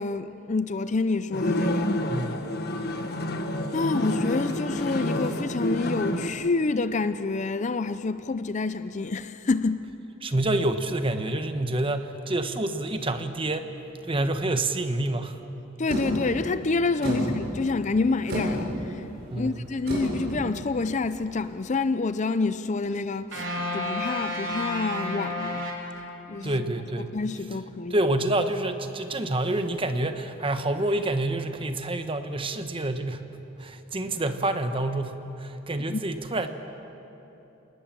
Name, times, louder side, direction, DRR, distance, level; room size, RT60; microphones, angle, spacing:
voice 1, 0.0-1.9 3.7-9.8 15.8-19.0 19.3-25.7 26.3-26.6 27.0-28.0 35.9-36.0, left 3 dB, 35° left, 0.5 m, -28 dB
sound 1, 1.3-6.3, left 1 dB, 55° left, 1.5 m, -28 dB
voice 2, 2.1-2.5 10.2-13.7 14.1-15.4 17.0-17.4 19.3-19.7 26.4-27.1 27.9-33.2 33.6-36.5, right 2 dB, 25° right, 1.2 m, -28 dB
sound 2, 15.9-21.5, equal, 55° right, 7.7 m, -33 dB
sound 3, 23.3-26.6, left 1 dB, 70° right, 3.9 m, -32 dB
27.0 x 19.5 x 7.5 m
head